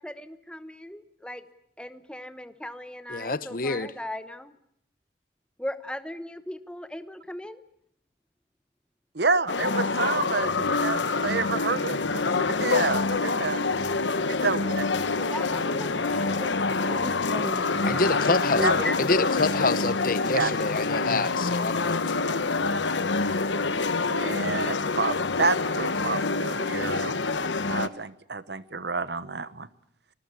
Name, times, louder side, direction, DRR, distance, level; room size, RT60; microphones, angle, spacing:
voice 1, 0.0-1.4 1.8-4.5 5.6-7.6 15.2-19.3, left 1 dB, 5° left, 1.0 m, -37 dB
voice 2, 3.1-3.9 17.9-18.7 19.0-22.0, left 3 dB, 50° left, 0.9 m, -27 dB
voice 3, 9.1-13.7 14.3-14.8 18.6-18.8 20.3-20.5 24.1-27.1 27.7-29.7, right 4 dB, 65° right, 1.1 m, -29 dB
sound 1, 9.5-27.9, left 3 dB, 80° left, 1.1 m, -26 dB
25.0 x 20.0 x 8.3 m
head